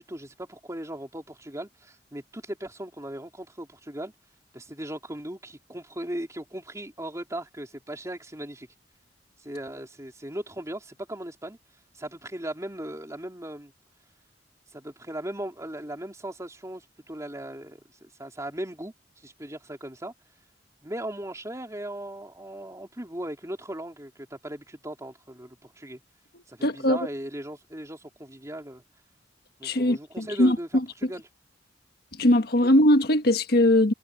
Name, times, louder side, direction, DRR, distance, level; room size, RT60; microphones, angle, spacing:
voice 1, 0.0-4.1 4.5-8.7 9.4-11.6 11.9-13.7 14.7-18.9 19.2-20.1 20.8-26.0 26.5-28.8 29.6-30.7 31.0-31.2, right 1 dB, 15° right, 3.6 m, -38 dB
voice 2, 26.6-27.0 29.6-30.8 32.2-33.9, left 1 dB, 60° left, 1.5 m, -21 dB
head